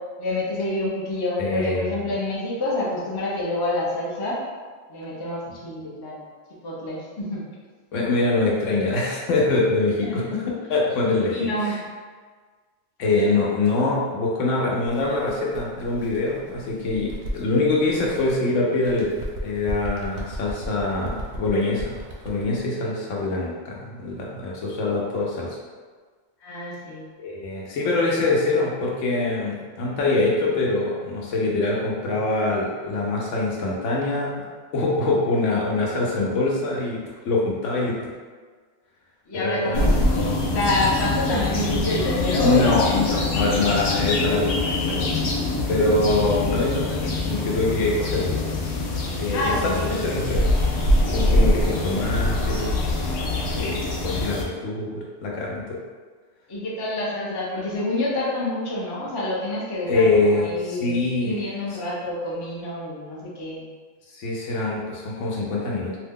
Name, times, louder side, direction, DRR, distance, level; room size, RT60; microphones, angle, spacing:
voice 1, 0.2-4.4 4.9-6.2 6.6-7.4 10.0-10.2 11.3-11.8 26.4-27.1 39.3-43.7 49.3-49.9 56.5-63.6, left 1 dB, 30° left, -6 dB, 0.4 m, -27 dB
voice 2, 1.4-1.8 7.9-10.4 10.7-11.3 11.6-11.8 13.0-19.1 19.4-25.6 27.2-34.4 34.7-38.0 39.3-40.0 42.4-45.3 45.7-48.4 49.2-50.5 51.1-52.7 53.6-55.6 59.9-61.3 64.1-66.0, left 2 dB, 80° left, -3 dB, 1.0 m, -24 dB
Bird, 14.8-18.4 18.8-22.6, equal, 60° right, 0.7 m, -36 dB
sound 1, 39.7-54.4, left 2 dB, 60° left, 0.7 m, -24 dB
2.7 x 2.2 x 3.6 m, 1.5 s
omnidirectional pair, 1.3 m